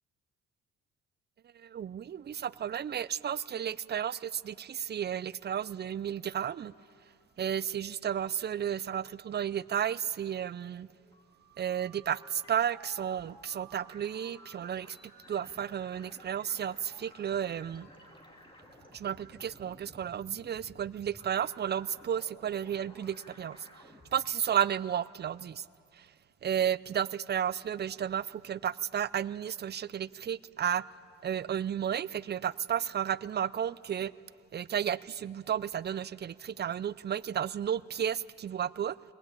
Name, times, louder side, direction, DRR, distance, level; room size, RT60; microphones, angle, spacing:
voice 1, 1.6-6.7 7.4-10.9 11.6-15.0 15.3-17.9 18.9-23.7 24.1-25.6 26.0-26.1 26.4-30.8 31.2-34.1 34.5-39.0, right 9 dB, 35° right, 19 dB, 0.5 m, -33 dB
sound 1, 10.9-24.2, right 1 dB, 15° left, 3.6 m, -55 dB
21.5 x 19.5 x 8.9 m, 2.4 s
cardioid pair, 90°, 30 cm